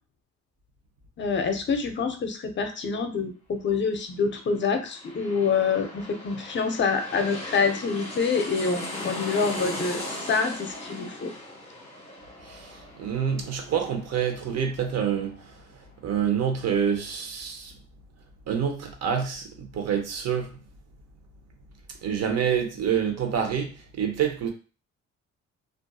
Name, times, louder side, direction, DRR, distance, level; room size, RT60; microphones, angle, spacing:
voice 1, 1.2-11.3, left 5 dB, 40° left, 0.6 m, -26 dB
sound 1, 4.6-15.9 16.3-16.4, left 1 dB, 20° left, 1.0 m, -39 dB
voice 2, 12.4-17.7 18.5-20.6 22.0-24.5, right 8 dB, 60° right, 0.8 m, -27 dB
2.5 x 2.4 x 2.3 m
cardioid pair, 90°, 30 cm